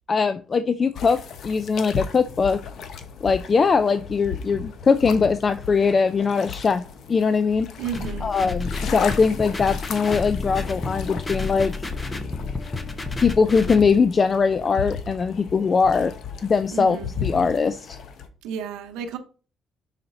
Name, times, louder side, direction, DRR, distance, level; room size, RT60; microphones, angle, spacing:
voice 1, 0.1-2.6 3.2-6.8 7.1-7.7 8.2-11.8 13.2-16.1 16.4-18.0, left 5 dB, 40° left, 0.4 m, -21 dB
sound 1, 1.0-18.3, left 6 dB, 65° left, 0.9 m, -36 dB
voice 2, 7.8-8.3 16.7-17.1 18.4-19.2, right 6 dB, 90° right, 0.7 m, -32 dB
sound 2, 7.9-13.9, left 3 dB, 20° left, 0.9 m, -31 dB
5.8 x 3.9 x 5.2 m
cardioid pair, 85°, 0 cm